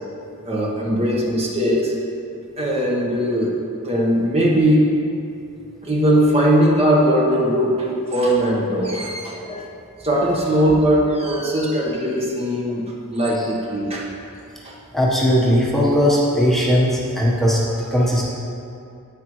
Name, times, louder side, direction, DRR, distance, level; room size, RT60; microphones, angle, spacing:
voice 1, 0.4-1.9 2.6-3.5 3.8-4.9 5.8-9.6 10.0-12.8 13.1-14.1 14.6-14.7, equal, 30° right, -3 dB, 1.1 m, -19 dB
voice 2, 14.9-18.2, equal, ahead, -6 dB, 1.1 m, -18 dB
10.0 x 9.0 x 3.1 m, 2.6 s
head